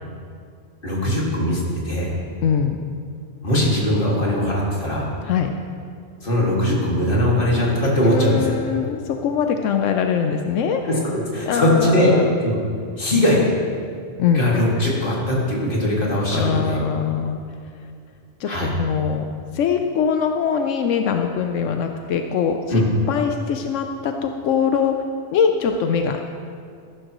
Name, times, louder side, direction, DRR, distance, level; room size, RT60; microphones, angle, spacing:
voice 1, 0.8-2.1 3.4-5.1 6.2-8.5 10.8-12.1 12.4-12.6 13.0-13.5 14.3-16.8 18.4-18.7 22.7-22.9, left 1 dB, 45° left, -4 dB, 2.3 m, -20 dB
voice 2, 2.4-2.9 5.2-5.5 8.0-10.8 11.5-12.3 14.2-14.5 16.3-17.4 18.4-19.2 19.5-22.8 23.1-24.9 25.3-26.3, left 7 dB, 90° left, 5 dB, 1.0 m, -22 dB
14.0 x 11.5 x 3.0 m, 2.2 s
omnidirectional pair, 1.2 m